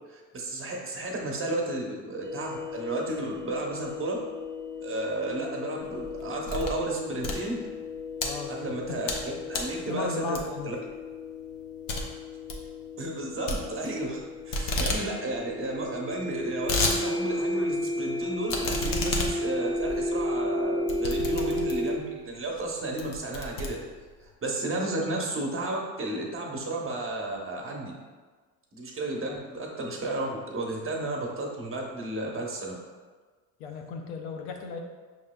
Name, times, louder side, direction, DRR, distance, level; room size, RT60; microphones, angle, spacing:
voice 1, 0.1-4.2 4.8-7.6 8.5-10.4 10.6-10.8 13.0-14.2 14.5-23.8 24.4-27.9 28.7-32.8, right 2 dB, 30° right, 0 dB, 1.0 m, -33 dB
sound 1, 2.2-22.0, left 1 dB, 10° right, 0.6 m, -34 dB
sound 2, 5.9-6.8 7.1-8.3 8.8-9.2 9.5-9.8 10.3-10.7 11.1-11.2 11.5-11.6 11.9-12.0 12.3-12.6 13.5-14.2 14.5-15.0 15.4-15.5 15.6-15.7 16.3-17.0 17.4-17.5 18.5-22.0 22.5-22.7 23.0-24.2, left 2 dB, 45° left, 0.8 m, -31 dB
voice 2, 8.2-8.6 8.9-9.0 9.9-10.8 29.2-29.4 33.6-34.8, left 4 dB, 80° left, 3 dB, 0.7 m, -36 dB
5.4 x 3.1 x 2.2 m, 1.4 s
hypercardioid pair, 75°, 45 cm